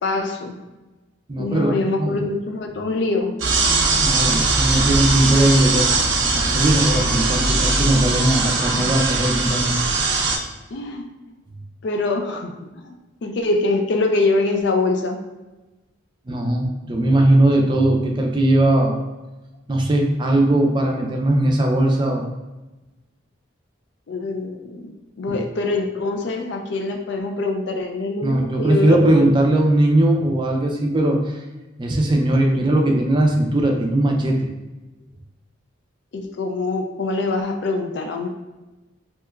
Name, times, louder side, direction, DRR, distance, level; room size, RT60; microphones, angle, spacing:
voice 1, 0.0-0.5 1.4-3.3 8.7-8.9 10.7-11.3 11.8-12.9 13.2-15.2 17.0-17.1 24.1-29.3 36.1-38.3, left 3 dB, 65° left, 4 dB, 0.4 m, -24 dB
voice 2, 1.3-1.7 2.0-2.2 4.0-5.9 6.2-9.8 16.3-19.0 19.7-22.2 25.3-25.4 28.2-31.4 31.8-34.5, right 1 dB, 25° right, 1 dB, 0.4 m, -19 dB
sound 1, 3.4-10.4, right 3 dB, 80° right, 0.5 m, -20 dB
3.4 x 2.8 x 2.2 m, 1.1 s
head